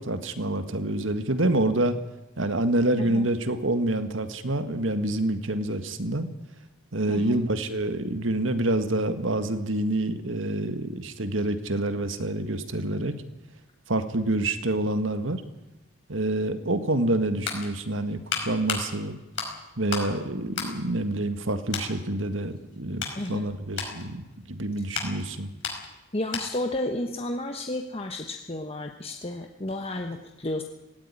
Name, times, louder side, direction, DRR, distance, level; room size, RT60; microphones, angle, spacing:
voice 1, 0.0-2.0 2.4-6.3 6.9-13.2 13.9-15.4 16.1-19.2 19.8-25.5, right 1 dB, 70° right, 9 dB, 1.8 m, -27 dB
voice 2, 3.0-3.3 7.1-7.4 23.1-23.4 26.1-30.6, left 1 dB, 30° left, 4 dB, 1.2 m, -32 dB
sound 1, 17.2-20.2 20.5-21.4 21.7-22.0 22.5-26.7 27.0-27.2, left 5 dB, 65° left, 5.1 m, -35 dB
17.5 x 17.5 x 9.9 m, 1.0 s
head